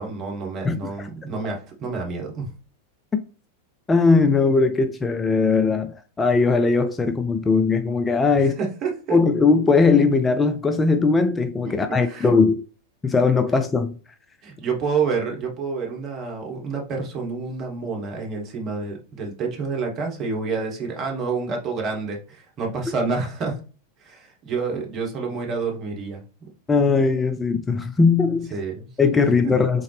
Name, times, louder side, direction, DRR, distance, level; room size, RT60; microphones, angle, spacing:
voice 1, 0.0-2.5 8.4-9.2 11.7-12.3 14.4-23.6 24.0-26.2 28.5-28.9, right 4 dB, 35° right, 1.4 m, -28 dB
voice 2, 0.6-1.1 3.9-8.6 9.1-12.6 13.0-14.0 26.7-28.5 29.0-29.8, left 4 dB, 15° left, 0.4 m, -19 dB
3.8 x 3.8 x 3.3 m
figure-of-eight pair, 90°, 0 cm